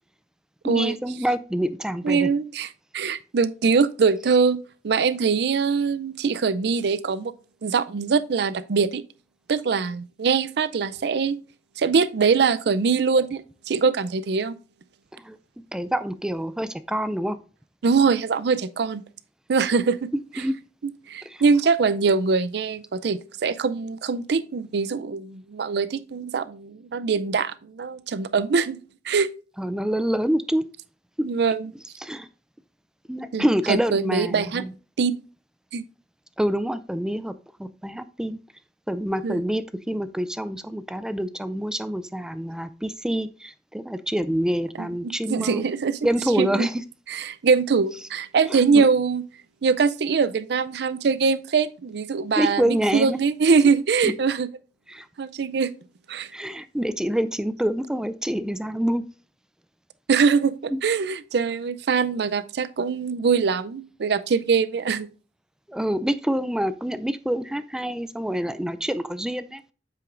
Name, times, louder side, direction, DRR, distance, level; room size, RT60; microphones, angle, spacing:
voice 1, 0.6-2.3 15.1-15.4 15.7-17.4 20.4-20.6 21.2-21.4 29.6-30.6 31.2-31.3 32.0-32.3 33.1-34.7 36.4-38.4 38.9-45.7 46.0-46.8 48.5-48.9 52.4-53.2 54.0-54.1 54.9-55.1 56.3-59.0 60.7-60.8 65.7-69.7, equal, 5° right, 0.3 m, -26 dB
voice 2, 2.0-2.7 2.9-7.3 7.6-9.0 9.5-11.4 11.8-14.6 17.8-19.0 19.5-20.1 20.8-28.8 29.0-29.3 31.2-31.7 33.3-34.6 35.0-35.2 35.7-35.8 39.2-39.4 44.8-44.9 45.3-46.0 46.4-46.7 47.1-49.2 49.6-54.5 55.2-55.7 56.1-56.3 60.1-65.1, right 5 dB, 65° right, 0.4 m, -23 dB
7.7 x 6.1 x 2.5 m
head